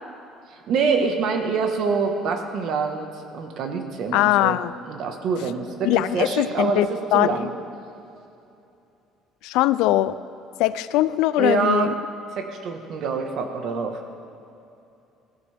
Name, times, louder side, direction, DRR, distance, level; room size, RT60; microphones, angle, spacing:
voice 1, 0.7-4.6 4.8-7.5 11.4-11.9 12.4-14.0, right 5 dB, 50° right, 4 dB, 1.4 m, -25 dB
voice 2, 4.1-4.7 5.8-7.3 9.4-10.2 10.6-11.9, left 15 dB, 80° left, 15 dB, 0.4 m, -21 dB
20.5 x 15.0 x 3.5 m, 2.7 s
cardioid pair, 170°, 0 cm